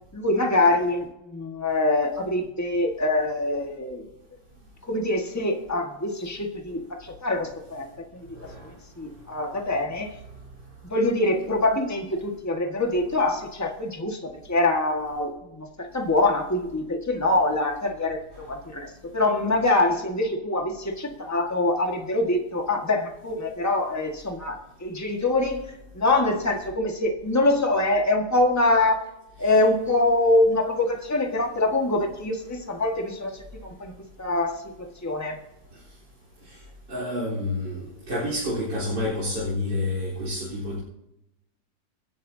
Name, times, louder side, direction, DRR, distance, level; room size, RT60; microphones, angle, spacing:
voice 1, 0.1-4.1 4.9-7.9 8.1-8.3 8.6-8.7 9.0-10.1 10.9-29.1 29.4-33.9 34.2-35.4, left 2 dB, 10° left, 2 dB, 1.5 m, -24 dB
voice 2, 8.3-8.7 29.4-29.5 36.5-36.6 36.9-40.8, left 1 dB, 60° right, -6 dB, 4.6 m, -29 dB
25.5 x 11.5 x 2.8 m, 0.89 s
omnidirectional pair, 2.0 m